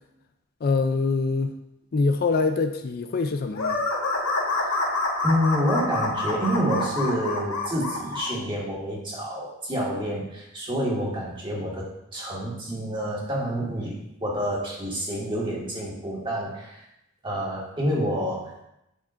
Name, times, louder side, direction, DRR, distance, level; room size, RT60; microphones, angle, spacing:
voice 1, 0.6-1.6 1.9-3.8, left 4 dB, 45° left, 7 dB, 0.4 m, -24 dB
sound 1, 3.5-8.3, left 2 dB, 85° left, 1.3 m, -27 dB
voice 2, 5.2-16.8 17.2-18.6, equal, 25° right, -4 dB, 1.8 m, -28 dB
8.7 x 5.9 x 2.5 m, 0.83 s
head